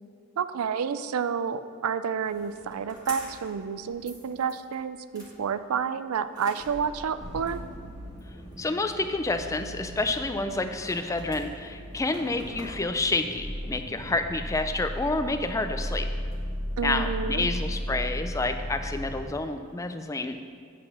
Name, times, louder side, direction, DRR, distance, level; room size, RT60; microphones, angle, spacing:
voice 1, 0.4-7.6 16.8-17.5, right 6 dB, 85° right, 13 dB, 0.4 m, -30 dB
sound 1, 2.2-3.6 3.8-4.7 5.1-5.3 6.2-19.2, equal, 20° right, 1.8 m, -36 dB
voice 2, 8.6-16.1 16.8-20.5, left 2 dB, 15° left, 8 dB, 0.3 m, -29 dB
8.3 x 5.9 x 6.3 m, 2.2 s
head